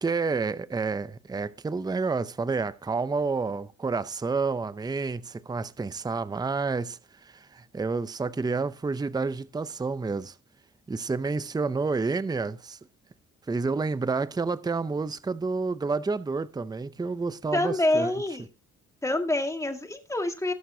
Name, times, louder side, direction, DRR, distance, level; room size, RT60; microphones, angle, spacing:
voice 1, 0.0-10.3 10.9-12.8 13.5-18.1, right 4 dB, 15° right, 0.6 m, -29 dB
voice 2, 17.5-18.5 19.0-20.5, left 1 dB, 10° left, 1.9 m, -26 dB
19.0 x 6.6 x 2.7 m
cardioid pair, 90°, 30 cm